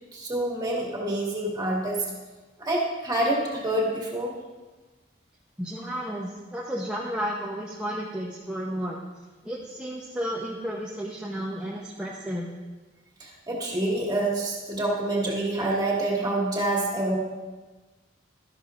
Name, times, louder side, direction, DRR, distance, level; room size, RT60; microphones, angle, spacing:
voice 1, 0.1-2.0 2.6-4.3 13.2-17.2, right 1 dB, 20° right, -3 dB, 1.9 m, -27 dB
voice 2, 5.6-9.0 9.4-12.5, equal, 5° right, -4 dB, 0.8 m, -32 dB
12.5 x 11.0 x 2.5 m, 1.2 s
head